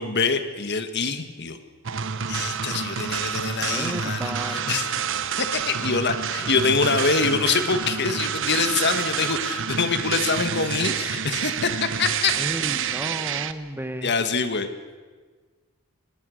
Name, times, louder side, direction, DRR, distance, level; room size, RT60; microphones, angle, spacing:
voice 1, 0.0-1.6 2.3-4.9 5.4-12.4 14.0-14.7, left 4 dB, 50° left, 9 dB, 1.6 m, -25 dB
sound 1, 1.8-13.5, right 7 dB, 60° right, 0.9 m, -28 dB
voice 2, 3.7-4.7 12.4-14.1, right 1 dB, 10° right, 9 dB, 1.2 m, -33 dB
24.0 x 20.0 x 6.5 m, 1.4 s
head